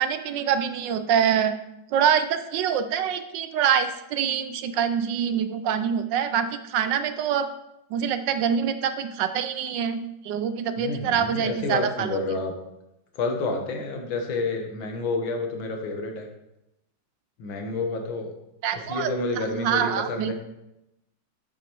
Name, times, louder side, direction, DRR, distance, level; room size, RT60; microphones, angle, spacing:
voice 1, 0.0-1.5 1.9-7.5 7.9-12.2 18.6-20.3, right 8 dB, 70° right, 10 dB, 1.2 m, -25 dB
voice 2, 10.8-12.5 13.2-16.3 17.4-18.3 18.7-20.3, left 3 dB, 75° left, 4 dB, 2.0 m, -29 dB
8.2 x 7.0 x 4.6 m, 0.86 s
omnidirectional pair, 2.2 m